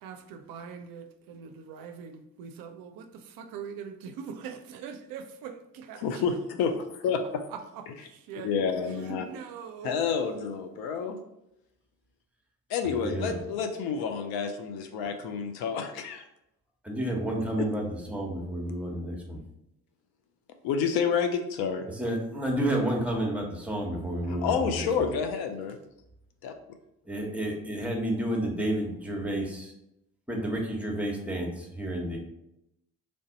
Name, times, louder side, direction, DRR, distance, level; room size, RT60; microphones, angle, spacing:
voice 1, 0.0-6.4 7.5-8.5 8.8-10.0, right 7 dB, 55° right, 7 dB, 0.5 m, -42 dB
voice 2, 6.0-7.4 7.9-8.0 8.4-9.2 9.8-11.2 12.7-16.1 20.6-21.9 24.3-25.8 26.4-26.5, left 6 dB, 65° left, 6 dB, 0.6 m, -29 dB
voice 3, 12.8-13.4 15.0-15.1 16.9-19.4 21.9-24.9 27.0-29.7 30.3-32.2, right 1 dB, 5° right, 0 dB, 1.1 m, -30 dB
3.4 x 2.6 x 3.9 m, 0.85 s
hypercardioid pair, 50°, 41 cm